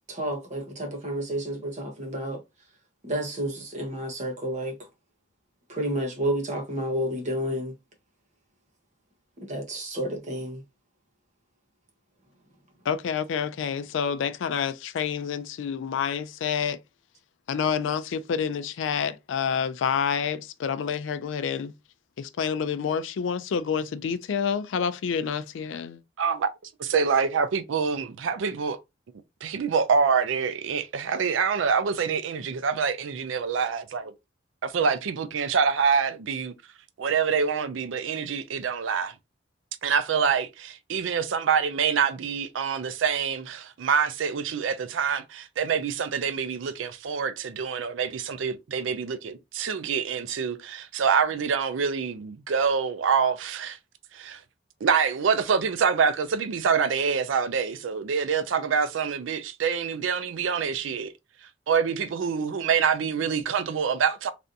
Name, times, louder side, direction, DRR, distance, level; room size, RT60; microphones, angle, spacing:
voice 1, 0.1-2.4 3.0-4.8 5.7-7.7 9.5-10.6, right 1 dB, 40° right, 1.0 m, -30 dB
voice 2, 12.9-16.8 17.5-21.7 22.2-26.0, left 7 dB, 75° left, 0.4 m, -28 dB
voice 3, 26.2-26.5 26.8-28.8 29.4-34.1 34.6-36.5 37.0-39.1 39.8-53.8 54.1-54.4 54.8-61.1 61.7-64.3, right 6 dB, 90° right, 0.4 m, -26 dB
3.3 x 2.5 x 2.6 m
head